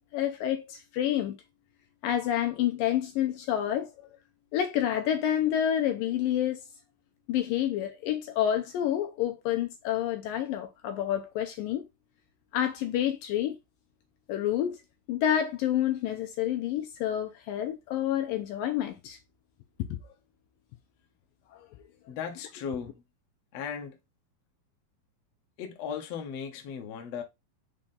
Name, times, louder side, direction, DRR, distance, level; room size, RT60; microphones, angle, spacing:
voice 1, 0.1-1.4 2.0-3.9 4.5-6.6 7.3-11.9 12.5-13.6 14.3-14.8 15.1-19.2 19.9-20.0 21.5-21.7, left 11 dB, 75° left, 2.3 m, -28 dB
voice 2, 22.1-23.0 23.5-24.0 25.6-27.2, left 7 dB, 60° left, 1.8 m, -36 dB
6.1 x 4.4 x 3.8 m
omnidirectional pair, 4.4 m